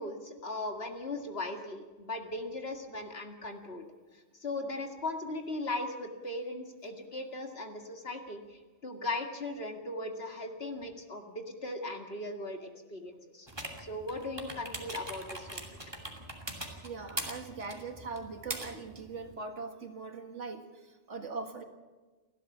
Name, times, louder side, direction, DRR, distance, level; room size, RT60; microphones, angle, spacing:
voice 1, 0.0-3.8 4.4-13.5 13.8-15.6, left 2 dB, 50° left, 4 dB, 2.3 m, -38 dB
sound 1, 13.5-19.4, right 1 dB, 20° right, 2.5 m, -42 dB
voice 2, 16.8-21.6, right 4 dB, 60° right, 6 dB, 2.1 m, -41 dB
29.0 x 12.5 x 7.3 m, 1.3 s
omnidirectional pair, 1.4 m